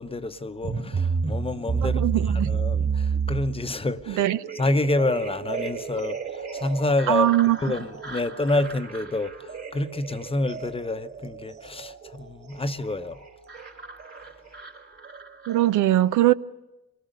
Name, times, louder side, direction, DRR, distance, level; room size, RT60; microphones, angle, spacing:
voice 1, 0.0-4.2 4.5-7.3 7.6-13.2, left 2 dB, 20° left, 0.8 m, -28 dB
sound 1, 0.6-15.8, right 5 dB, 50° right, 3.8 m, -31 dB
voice 2, 1.8-2.5 4.2-4.4 7.1-7.6 15.5-16.3, right 14 dB, 80° right, 0.6 m, -21 dB
24.0 x 19.0 x 6.5 m
cardioid pair, 90°, 30 cm